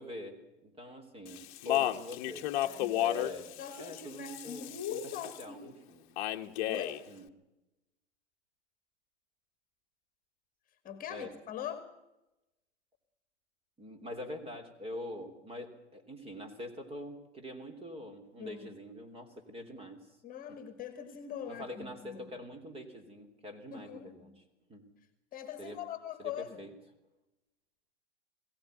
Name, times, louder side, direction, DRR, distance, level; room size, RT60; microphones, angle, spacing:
voice 1, 0.0-2.5 3.0-5.0 5.4-6.0 7.1-7.3 11.1-11.3 13.8-20.2 20.5-20.6 21.5-24.4 24.7-24.9 25.6-25.8 26.2-26.7, left 1 dB, 15° right, 7 dB, 3.4 m, -44 dB
Speech, 1.3-5.4 6.2-7.0, left 13 dB, 40° left, 1.4 m, -33 dB
voice 2, 2.6-3.0 3.6-5.7 6.7-7.0 10.8-11.9 18.4-18.7 20.2-22.3 23.7-24.4 25.3-26.6, left 8 dB, 25° left, 10 dB, 2.2 m, -42 dB
21.5 x 17.0 x 9.2 m, 0.97 s
hypercardioid pair, 115°, 35 cm